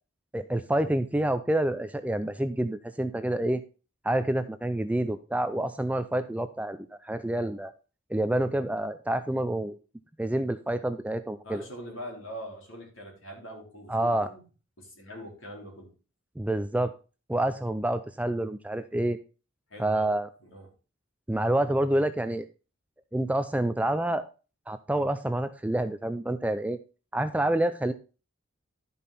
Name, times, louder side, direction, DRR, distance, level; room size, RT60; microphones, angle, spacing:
voice 1, 0.3-3.6 4.0-7.7 8.1-9.8 10.2-11.6 13.9-14.3 16.4-16.9 17.3-19.2 19.8-20.3 21.3-22.5 23.1-24.3 24.7-26.8 27.1-27.9, right 1 dB, 5° right, 11 dB, 0.4 m, -28 dB
voice 2, 11.4-14.4 14.8-15.9 19.7-20.7, equal, 65° left, -1 dB, 3.9 m, -43 dB
12.0 x 5.6 x 4.1 m, 0.33 s
head